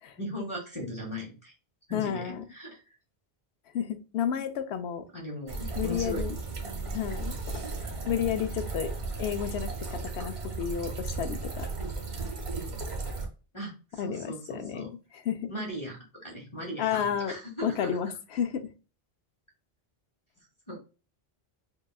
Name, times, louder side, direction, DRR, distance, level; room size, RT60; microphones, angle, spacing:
voice 1, 0.2-1.5 1.9-2.8 5.1-6.2 7.6-7.7 13.5-14.9 15.5-18.0 20.7-20.8, equal, 30° left, -1 dB, 0.9 m, -38 dB
voice 2, 1.9-2.4 3.7-5.1 5.8-6.4 6.9-7.6 8.1-8.9 9.2-11.7 14.0-14.9 15.1-15.5 16.8-17.3 17.6-18.7, left 8 dB, 85° left, 8 dB, 0.8 m, -31 dB
sound 1, 5.5-13.3, right 3 dB, 80° right, 1.2 m, -35 dB
5.6 x 2.3 x 2.3 m, 0.34 s
omnidirectional pair, 1.1 m